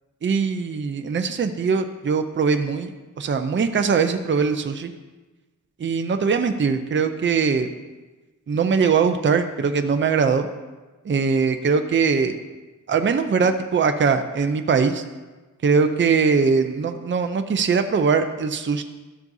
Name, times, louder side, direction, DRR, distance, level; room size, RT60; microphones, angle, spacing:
voice 1, 0.2-2.9 3.2-4.9 5.8-7.7 8.5-10.5 11.0-12.4 12.9-15.0 15.6-18.8, right 5 dB, 35° right, 7 dB, 0.5 m, -21 dB
12.5 x 7.2 x 2.7 m, 1.2 s
wide cardioid pair, 135°, 33 cm